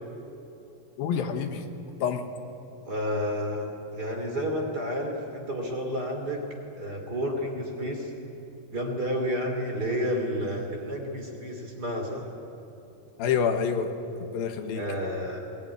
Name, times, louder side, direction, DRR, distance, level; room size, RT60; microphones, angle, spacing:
voice 1, 1.0-1.7 2.0-2.2 13.2-13.9 14.2-14.8, left 7 dB, 85° left, 6 dB, 3.2 m, -27 dB
voice 2, 2.8-6.4 6.8-8.1 8.7-12.3 14.7-15.4, equal, 30° right, 2 dB, 2.9 m, -30 dB
20.5 x 19.5 x 9.8 m, 2.9 s
omnidirectional pair, 4.1 m